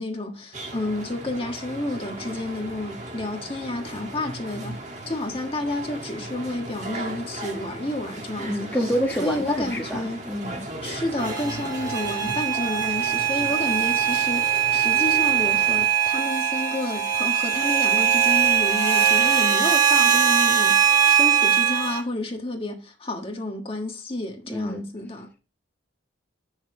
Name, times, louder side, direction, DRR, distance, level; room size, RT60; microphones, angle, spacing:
voice 1, 0.0-8.9 9.2-10.2 10.8-25.3, left 2 dB, 30° left, 1.5 m, -30 dB
sound 1, 0.5-15.9, right 2 dB, 35° right, 1.7 m, -37 dB
voice 2, 8.4-10.7 24.5-24.8, equal, 10° left, 1.3 m, -27 dB
sound 2, 11.2-22.0, right 8 dB, 20° right, 1.7 m, -21 dB
9.9 x 6.4 x 3.7 m
head